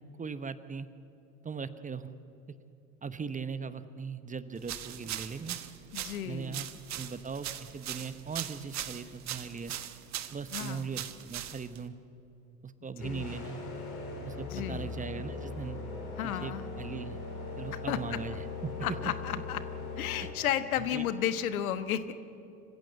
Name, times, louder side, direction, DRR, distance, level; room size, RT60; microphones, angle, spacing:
voice 1, 0.2-0.9 1.4-2.1 3.0-5.6 6.2-6.7 6.9-9.7 10.3-12.0 12.6-13.6 14.2-15.8 16.2-17.2 17.6-18.7 20.2-20.3 20.9-21.1, right 5 dB, 20° right, 13 dB, 1.0 m, -39 dB
sound 1, 4.6-11.9, right 11 dB, 40° right, 1.4 m, -40 dB
voice 2, 5.9-6.7 10.5-10.8 13.0-13.3 14.5-14.9 16.2-16.7 17.9-18.0 18.8-19.6 20.0-22.1, left 10 dB, 75° left, 12 dB, 1.3 m, -33 dB
sound 2, 13.0-20.3, left 4 dB, 60° left, 6.2 m, -40 dB
26.0 x 15.5 x 8.2 m, 2.8 s
hypercardioid pair, 75°, 43 cm